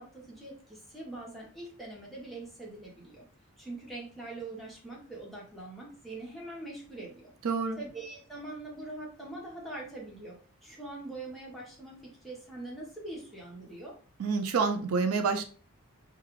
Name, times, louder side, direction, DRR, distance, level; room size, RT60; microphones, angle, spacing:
voice 1, 0.0-3.3 3.6-7.3 7.8-14.0, right 2 dB, ahead, -4 dB, 0.8 m, -43 dB
voice 2, 7.4-7.8 14.2-15.4, right 4 dB, 90° right, 6 dB, 0.4 m, -28 dB
2.4 x 2.3 x 3.0 m, 0.40 s
head